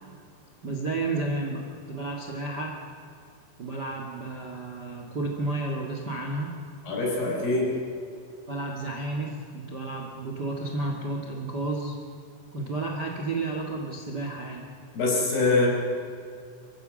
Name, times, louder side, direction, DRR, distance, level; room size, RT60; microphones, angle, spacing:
voice 1, 0.6-1.6 1.9-2.8 3.6-6.5 8.5-12.0 12.5-14.6, right 2 dB, 35° right, 1 dB, 1.7 m, -31 dB
voice 2, 6.8-7.7 14.9-15.7, left 2 dB, 65° left, -1 dB, 6.6 m, -24 dB
26.0 x 15.0 x 7.8 m, 2.3 s
omnidirectional pair, 4.9 m